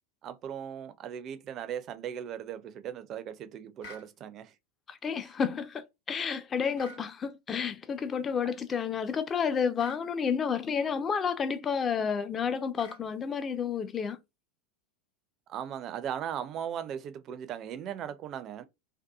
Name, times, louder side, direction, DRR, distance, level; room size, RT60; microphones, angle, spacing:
voice 1, 0.2-4.5 8.4-8.5 15.5-18.6, right 9 dB, 40° right, 0.4 m, -38 dB
sound 1, 3.8-4.1 6.7-7.1 9.8-10.0 12.7-13.0, left 1 dB, 60° left, 0.8 m, -48 dB
voice 2, 4.9-14.2, left 6 dB, 25° left, 0.4 m, -30 dB
2.7 x 2.3 x 2.2 m
figure-of-eight pair, 85°, 0 cm